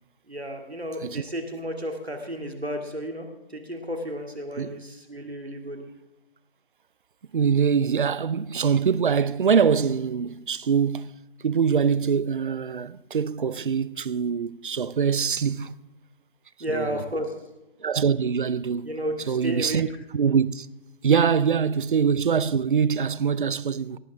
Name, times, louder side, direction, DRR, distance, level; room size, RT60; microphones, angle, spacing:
voice 1, 0.3-5.8 16.6-17.3 18.8-19.8, equal, 90° right, 2.4 m, -32 dB
voice 2, 7.3-11.2 11.4-15.7 16.7-17.0 17.8-18.9 19.3-19.9 20.1-20.7 21.0-24.0, right 6 dB, 55° right, 0.6 m, -23 dB
18.0 x 11.5 x 3.6 m
figure-of-eight pair, 140°, 31 cm